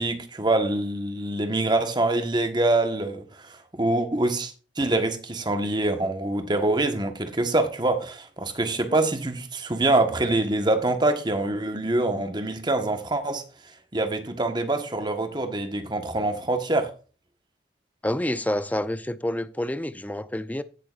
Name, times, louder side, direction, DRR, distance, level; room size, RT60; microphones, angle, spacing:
voice 1, 0.0-13.4 13.9-16.9, right 2 dB, 25° right, 1.3 m, -25 dB
voice 2, 18.0-20.6, left 1 dB, 10° left, 0.5 m, -28 dB
16.5 x 6.9 x 2.5 m
head